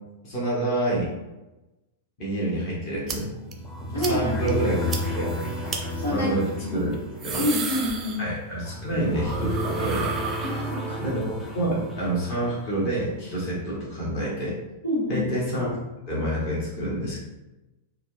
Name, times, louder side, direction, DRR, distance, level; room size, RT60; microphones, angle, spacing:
voice 1, 0.2-1.1 2.2-3.3 3.9-5.3 6.1-6.9 7.2-7.5 8.2-10.1 11.0-14.5 15.1-15.8 16.1-17.2, right 1 dB, 40° left, -6 dB, 1.3 m, -28 dB
sound 1, 3.1-3.2 3.5-3.6 4.0-4.2 4.5-4.6 4.9-5.0 5.7-5.8 6.9-8.6 8.9-11.1, right 5 dB, 25° right, 0.5 m, -33 dB
sound 2, 3.2-13.3, equal, 10° left, 0.8 m, -32 dB
voice 2, 3.9-4.4 5.9-6.3 6.6-6.9 7.4-8.2 10.4-11.0 14.8-15.2, left 1 dB, 80° left, -7 dB, 1.4 m, -27 dB
4.2 x 2.4 x 2.6 m, 1.0 s
figure-of-eight pair, 95°, 0 cm